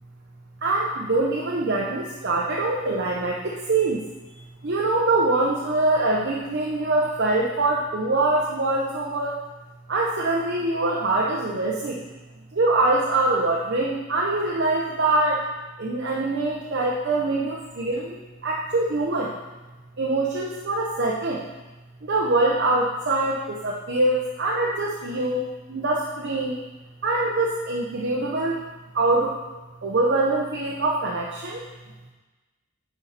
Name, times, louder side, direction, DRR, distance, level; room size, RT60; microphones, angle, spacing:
voice 1, 0.6-4.0 4.6-9.4 9.9-12.0 12.5-15.4 15.8-19.3 20.0-21.4 22.0-26.6 27.0-28.7 28.9-29.3 29.8-31.6, right 2 dB, 60° right, -3 dB, 0.8 m, -24 dB
9.5 x 4.2 x 4.1 m, 1.2 s
head